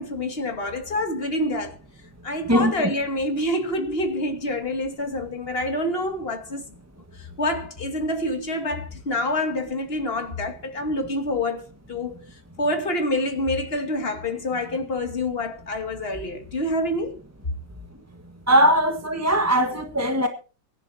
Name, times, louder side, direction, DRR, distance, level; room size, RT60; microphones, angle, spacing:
voice 1, 0.0-1.8 2.2-6.6 7.1-12.2 12.6-17.2, left 1 dB, 35° left, 2.5 m, -27 dB
voice 2, 18.5-20.3, equal, 10° right, 1.3 m, -19 dB
24.0 x 11.5 x 2.8 m
omnidirectional pair, 1.8 m